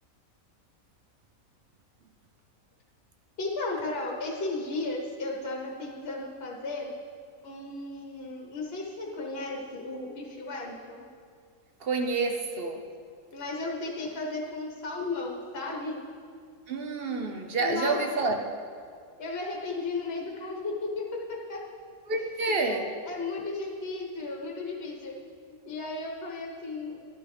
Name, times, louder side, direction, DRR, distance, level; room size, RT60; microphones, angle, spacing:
voice 1, 3.4-6.9 7.4-11.1 13.3-15.9 17.6-18.0 19.2-21.6 22.6-25.1 25.5-27.0, left 3 dB, 45° left, -1 dB, 1.4 m, -35 dB
voice 2, 11.8-12.8 16.7-18.4 22.1-22.8, right 3 dB, 50° right, 4 dB, 0.8 m, -28 dB
12.0 x 9.6 x 3.4 m, 2.1 s
omnidirectional pair, 1.5 m